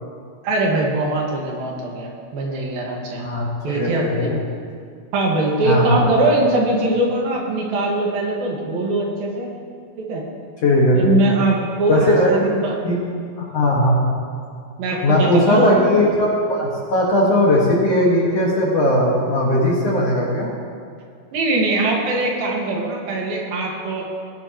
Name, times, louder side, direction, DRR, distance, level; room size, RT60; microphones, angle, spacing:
voice 1, 0.4-3.3 3.6-4.4 5.1-9.5 10.0-10.2 10.9-12.8 14.8-15.8 21.3-24.0, right 2 dB, 75° right, -2 dB, 3.2 m, -21 dB
voice 2, 3.2-4.4 5.7-6.0 10.6-11.2 11.9-12.3 12.8-13.0 13.4-14.0 15.0-20.5, left 1 dB, 50° left, -5 dB, 2.1 m, -18 dB
18.5 x 10.5 x 2.9 m, 2.2 s
omnidirectional pair, 4.4 m